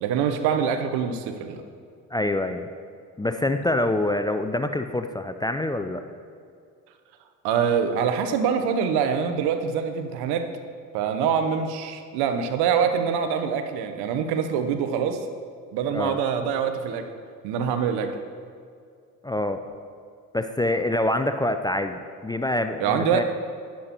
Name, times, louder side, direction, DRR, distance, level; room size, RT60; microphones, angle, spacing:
voice 1, 0.0-1.6 7.4-10.5 10.9-15.3 15.7-17.1 17.4-18.2 22.8-23.2, right 7 dB, 70° right, 7 dB, 0.9 m, -24 dB
voice 2, 2.1-2.7 3.2-6.0 15.9-16.2 19.2-19.6 20.3-23.2, left 1 dB, 10° left, 8 dB, 0.4 m, -26 dB
11.5 x 10.5 x 3.0 m, 2.3 s
hypercardioid pair, 55°, 40 cm